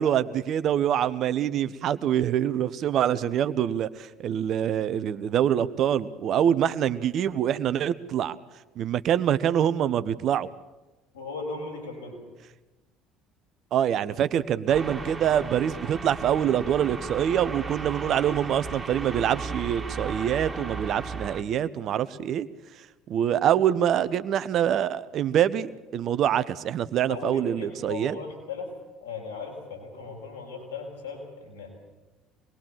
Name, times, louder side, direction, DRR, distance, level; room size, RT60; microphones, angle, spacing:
voice 1, 0.0-8.4 8.8-10.5 13.7-22.5 23.1-28.2, right 10 dB, 50° right, 15 dB, 1.1 m, -25 dB
voice 2, 11.1-12.2 27.1-28.7 29.0-31.7, left 4 dB, 75° left, 0 dB, 6.5 m, -37 dB
sound 1, 14.7-21.4, right 4 dB, 20° right, 2.6 m, -35 dB
25.5 x 21.5 x 7.5 m, 1.1 s
figure-of-eight pair, 60°, 0 cm